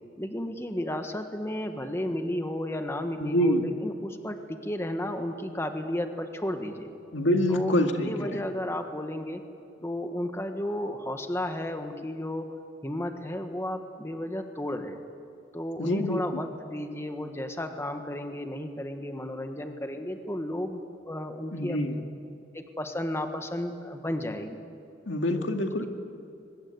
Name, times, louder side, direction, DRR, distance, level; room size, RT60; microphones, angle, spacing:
voice 1, 0.2-6.9 7.5-7.7 8.1-9.4 9.8-12.5 12.8-15.0 15.5-21.8 22.5-24.6 25.3-25.5, left 1 dB, 15° left, 6 dB, 1.5 m, -33 dB
voice 2, 3.2-3.7 7.1-8.5 15.8-16.4 21.5-22.0 25.1-25.9, equal, 90° left, 4 dB, 2.1 m, -26 dB
23.5 x 21.5 x 8.2 m, 2.6 s
head